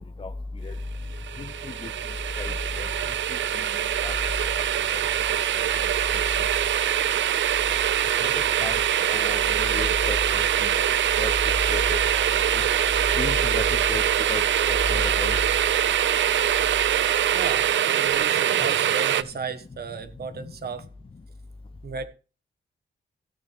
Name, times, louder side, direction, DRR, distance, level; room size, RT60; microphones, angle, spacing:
sound 1, 1.1-19.2, right 10 dB, 75° right, 0.5 m, -23 dB
voice 1, 2.4-2.9 4.0-4.2 4.6-4.7 8.3-8.8 9.1-10.2 10.6-10.8 11.2-11.3 11.7-12.0 12.6-12.7 13.2-14.0 14.3-14.4 14.7-15.4, left 3 dB, 30° left, 0.7 m, -31 dB
voice 2, 17.3-20.9 21.8-22.1, right 5 dB, 55° right, 1.2 m, -35 dB
16.5 x 6.9 x 3.4 m
wide cardioid pair, 145°, 19 cm